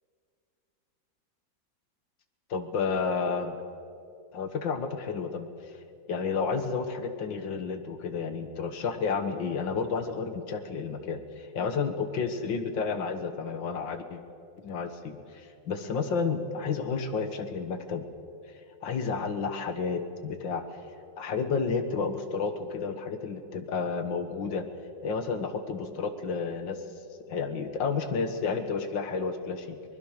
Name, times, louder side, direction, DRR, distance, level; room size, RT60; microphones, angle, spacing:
voice 1, 2.5-3.6 4.3-5.5 6.1-14.2 14.6-18.0 18.8-20.6 21.2-24.7 25.0-26.8 27.3-29.8, left 5 dB, 75° left, 8 dB, 2.1 m, -31 dB
22.5 x 20.5 x 6.5 m, 2.5 s
omnidirectional pair, 2.1 m